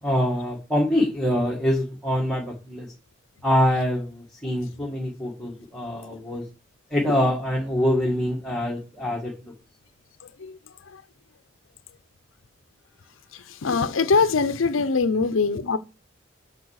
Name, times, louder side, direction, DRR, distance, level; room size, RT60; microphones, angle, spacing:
voice 1, 0.0-2.9 3.4-6.5 6.9-9.5, equal, ahead, 1.8 m, -25 dB
voice 2, 13.6-15.8, left 4 dB, 80° left, 0.6 m, -22 dB
8.6 x 5.5 x 6.4 m
head